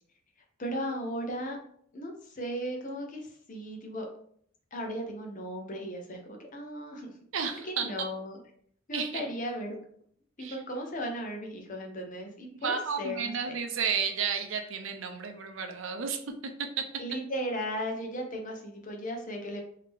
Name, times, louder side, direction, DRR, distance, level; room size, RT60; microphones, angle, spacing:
voice 1, 0.6-1.6 1.9-4.1 4.7-7.1 7.6-8.4 8.9-9.7 10.4-13.6 17.0-19.6, equal, 40° left, 2 dB, 0.7 m, -36 dB
voice 2, 7.3-8.1 8.9-9.2 10.4-10.6 12.6-16.9, right 6 dB, 65° right, 6 dB, 0.5 m, -32 dB
3.5 x 2.7 x 3.4 m, 0.63 s
head